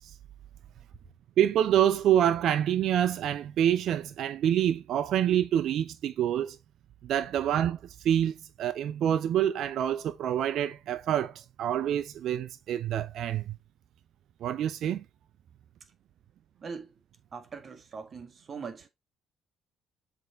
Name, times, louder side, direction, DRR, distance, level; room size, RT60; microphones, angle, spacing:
voice 1, 1.4-6.6 7.0-7.8 8.0-13.6 14.4-15.0, right 10 dB, 65° right, 0.5 m, -27 dB
voice 2, 16.6-16.9 17.3-18.9, right 5 dB, 45° right, 1.8 m, -41 dB
7.6 x 3.5 x 4.2 m
supercardioid pair, 65°, 0 cm